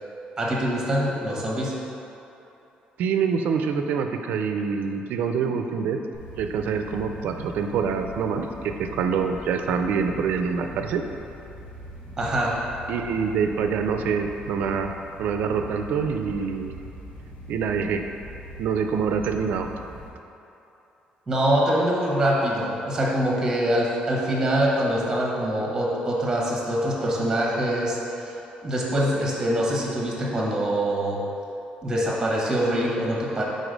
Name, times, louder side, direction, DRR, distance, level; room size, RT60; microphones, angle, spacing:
voice 1, 0.4-1.8 12.2-12.6 21.3-31.3 31.8-33.4, right 1 dB, 15° right, -3 dB, 1.1 m, -24 dB
voice 2, 3.0-6.0 6.4-11.0 12.9-14.9 15.2-16.8 17.5-18.0 18.6-19.7, right 6 dB, 70° right, 5 dB, 0.4 m, -25 dB
sound 1, 6.1-20.1, equal, 45° left, 1.0 m, -42 dB
5.0 x 4.0 x 5.1 m, 2.9 s
cardioid pair, 150°, 3 cm